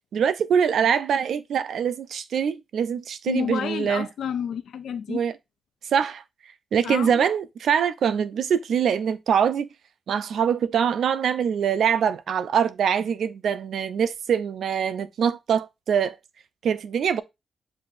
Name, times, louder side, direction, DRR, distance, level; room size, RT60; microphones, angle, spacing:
voice 1, 0.1-4.1 5.1-5.3 5.9-6.2 6.7-9.7 10.1-16.2 16.6-17.2, right 7 dB, 75° right, 0.4 m, -23 dB
voice 2, 3.3-5.2 6.8-7.3, left 8 dB, 90° left, 0.5 m, -30 dB
7.5 x 2.6 x 2.5 m
wide cardioid pair, 115°, 0 cm